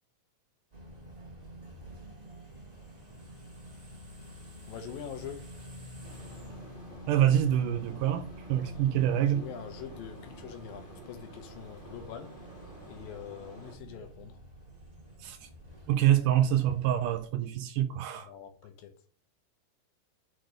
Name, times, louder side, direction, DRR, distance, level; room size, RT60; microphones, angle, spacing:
sound 1, 0.7-17.3, equal, 15° right, 1.6 m, -49 dB
voice 1, 4.7-5.5 9.2-12.3 12.9-14.4 18.3-18.9, left 8 dB, 80° left, 2.8 m, -44 dB
sound 2, 6.0-13.7, right 1 dB, 25° left, 1.0 m, -50 dB
voice 2, 7.1-9.4 15.2-15.5 15.9-18.3, right 11 dB, 80° right, 2.0 m, -26 dB
6.7 x 4.1 x 6.3 m
omnidirectional pair, 4.1 m